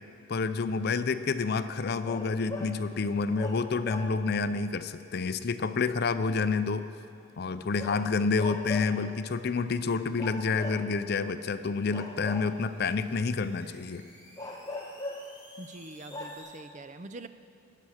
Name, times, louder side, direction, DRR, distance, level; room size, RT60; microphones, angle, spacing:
voice 1, 0.3-6.9 7.4-14.0, left 4 dB, 50° left, 12 dB, 0.5 m, -29 dB
sound 1, 2.0-2.8 3.4-4.4 7.8-9.1 10.2-11.3 11.9-12.9 14.4-15.4 15.8-15.9 16.1-16.4, left 2 dB, 15° left, 1.0 m, -40 dB
sound 2, 11.8-16.6, left 1 dB, 10° right, 3.2 m, -55 dB
voice 2, 15.6-17.3, right 2 dB, 35° right, 11 dB, 0.4 m, -44 dB
20.0 x 7.4 x 6.5 m, 2.4 s
head